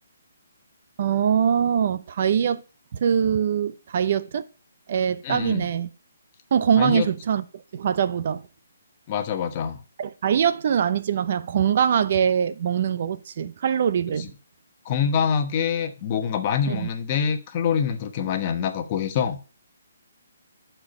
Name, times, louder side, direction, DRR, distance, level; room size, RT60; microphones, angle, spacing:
voice 1, 1.0-2.6 2.9-4.4 4.9-5.9 6.5-7.4 7.7-8.4 10.0-14.3 16.7-16.9, right 8 dB, 50° right, 0.6 m, -23 dB
voice 2, 5.2-5.6 6.8-7.1 9.1-9.8 14.2-14.3 14.8-19.4, left 7 dB, 30° left, 1.1 m, -25 dB
11.5 x 4.6 x 5.3 m
hypercardioid pair, 155°, 0 cm